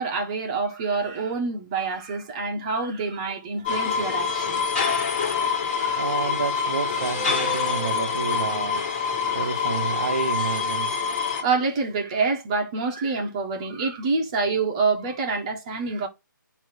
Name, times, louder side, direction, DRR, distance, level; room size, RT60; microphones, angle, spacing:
voice 1, 0.0-4.8 5.7-6.1 9.2-9.5 11.4-16.1, right 4 dB, 15° right, 1.5 m, -27 dB
sound 1, 3.6-11.4, left 5 dB, 20° left, 4.5 m, -25 dB
voice 2, 6.0-8.8 9.3-10.9, right 5 dB, 40° right, 0.6 m, -30 dB
9.1 x 3.2 x 6.2 m
hypercardioid pair, 170°, 11 cm